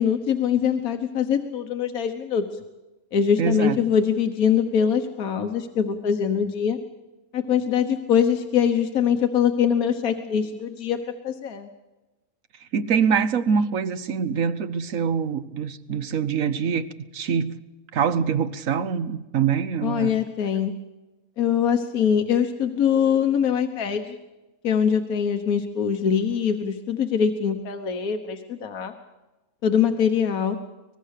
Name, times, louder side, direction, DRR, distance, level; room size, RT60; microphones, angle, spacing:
voice 1, 0.0-2.4 3.1-6.8 7.3-11.0 11.2-11.7 19.8-20.7 21.4-24.2 24.6-28.9 29.6-30.6, left 7 dB, 70° left, 5 dB, 1.6 m, -23 dB
voice 2, 3.4-3.8 12.7-16.9 17.1-17.6 17.9-20.1, right 6 dB, 65° right, 13 dB, 1.3 m, -24 dB
24.5 x 20.0 x 6.6 m, 1.1 s
omnidirectional pair, 1.6 m